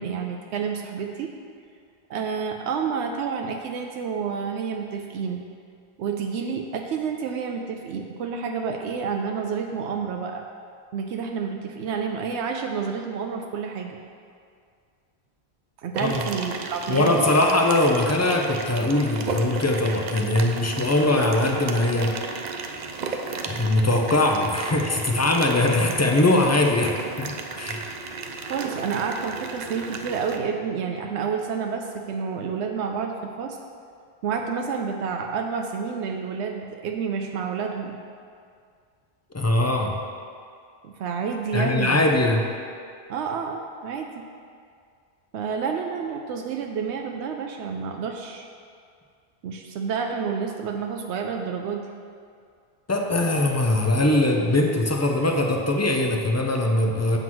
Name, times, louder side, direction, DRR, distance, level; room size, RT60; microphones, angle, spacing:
voice 1, 0.0-1.3 2.1-5.4 6.0-10.4 10.9-14.0 15.8-17.2 28.4-33.6 34.2-38.0 40.8-42.0 43.1-44.3 45.3-48.5 49.4-51.9, right 6 dB, 85° right, 3 dB, 0.9 m, -29 dB
sound 1, 15.9-30.4, right 4 dB, 55° right, 0.5 m, -34 dB
voice 2, 16.0-16.3 16.9-22.1 23.5-27.9 39.3-40.0 41.5-42.4 52.9-57.2, left 1 dB, 20° left, 2 dB, 0.4 m, -21 dB
7.7 x 3.9 x 6.0 m, 2.2 s
omnidirectional pair, 1.1 m